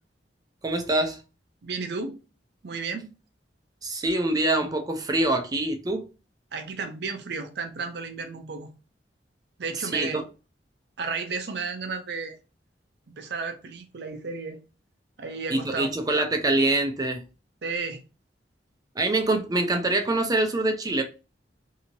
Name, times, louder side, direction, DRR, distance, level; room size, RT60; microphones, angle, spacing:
voice 1, 0.6-1.2 3.8-6.1 9.8-10.2 15.5-17.2 19.0-21.0, right 2 dB, 20° right, 0.5 m, -25 dB
voice 2, 1.6-2.2 2.6-3.1 6.5-8.7 9.6-10.2 11.0-12.4 13.2-14.6 15.2-15.9 17.6-18.0, right 4 dB, 65° right, 0.6 m, -33 dB
2.9 x 2.7 x 2.6 m
head